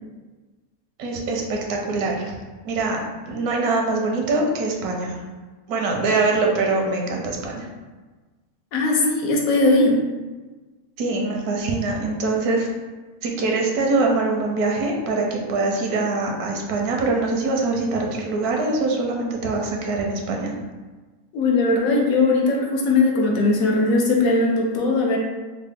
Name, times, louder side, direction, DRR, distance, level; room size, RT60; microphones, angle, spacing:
voice 1, 1.0-2.3 2.6-3.0 3.3-5.2 5.7-7.7 11.0-12.7 13.2-20.5, right 3 dB, 80° right, 1 dB, 1.1 m, -23 dB
voice 2, 8.7-10.0 21.3-25.2, left 2 dB, 70° left, -1 dB, 1.0 m, -19 dB
3.8 x 2.0 x 3.4 m, 1.3 s
omnidirectional pair, 1.6 m